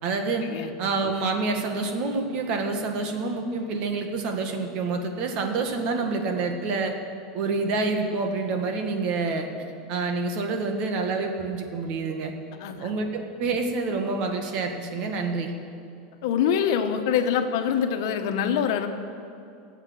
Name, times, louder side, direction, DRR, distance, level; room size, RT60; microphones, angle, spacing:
voice 1, 0.0-0.5 0.8-6.9 7.3-12.3 12.8-15.5, right 3 dB, 45° right, 4 dB, 1.8 m, -27 dB
voice 2, 16.2-18.9, left 8 dB, 65° left, 6 dB, 1.3 m, -24 dB
21.5 x 8.1 x 6.5 m, 2.5 s
supercardioid pair, 160°, 2 cm